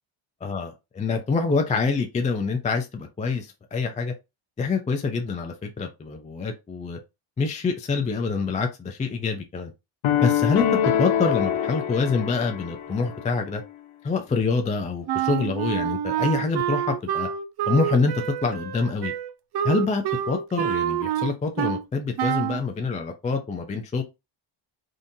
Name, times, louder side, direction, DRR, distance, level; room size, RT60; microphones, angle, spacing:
voice 1, 1.0-4.1 4.6-7.0 7.4-9.7 10.2-13.6 14.0-17.3 17.7-18.1 18.4-19.1 19.6-24.0, left 4 dB, 15° left, 0.3 m, -26 dB
sound 1, 10.0-13.3, left 9 dB, 75° left, 0.7 m, -24 dB
Wind instrument woodwind instrument, 15.1-21.9 22.2-22.6, right 11 dB, 55° right, 0.5 m, -27 dB
3.7 x 2.7 x 2.6 m
cardioid pair, 115°, 50 cm